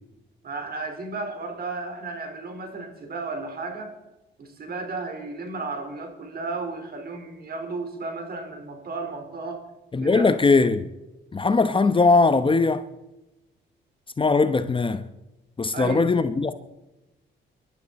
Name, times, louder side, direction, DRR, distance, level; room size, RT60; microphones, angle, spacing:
voice 1, 0.4-3.9 4.4-9.6 10.0-10.3 15.7-16.1, right 3 dB, 50° right, 4.4 m, -33 dB
voice 2, 9.9-10.9 11.3-12.8 14.2-15.0 15.6-16.5, left 3 dB, 25° left, 0.9 m, -20 dB
23.5 x 12.0 x 4.3 m
cardioid pair, 90°, 20 cm